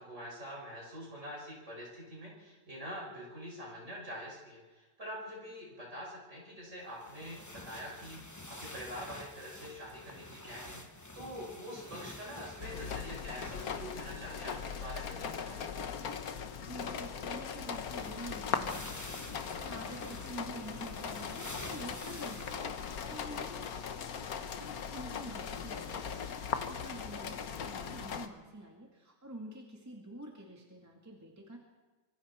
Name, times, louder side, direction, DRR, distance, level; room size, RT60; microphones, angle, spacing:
voice 1, 0.0-15.9 27.8-28.0, equal, 40° right, -3 dB, 6.5 m, -45 dB
sound 1, 7.0-14.5 14.7-14.8 17.3-17.4 17.7-24.3 24.9-25.0 26.2-26.3, left 2 dB, 10° left, 0.9 m, -49 dB
sound 2, 12.6-28.3, left 7 dB, 60° left, 1.4 m, -39 dB
voice 2, 16.7-18.9 19.5-23.6 24.4-26.4 26.7-31.6, right 1 dB, 10° right, -1 dB, 2.1 m, -47 dB
25.5 x 23.5 x 4.4 m, 1.3 s
omnidirectional pair, 1.9 m